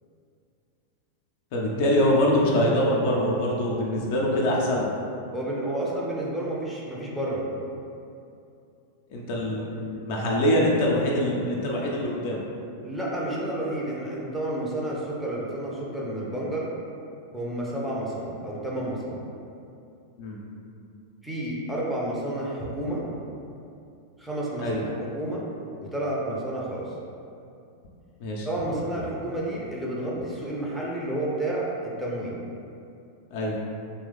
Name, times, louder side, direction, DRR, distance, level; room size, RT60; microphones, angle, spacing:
voice 1, 1.5-4.9 9.1-12.4 20.2-20.4 24.6-24.8 28.2-28.5 33.3-33.6, left 1 dB, 50° left, -3 dB, 0.4 m, -24 dB
voice 2, 5.3-7.5 12.8-16.7 17.3-19.2 21.2-23.0 24.2-25.4 25.8-26.9 28.4-32.3, right 1 dB, ahead, -6 dB, 0.5 m, -30 dB
3.0 x 2.2 x 3.3 m, 2.6 s
figure-of-eight pair, 90°, 0 cm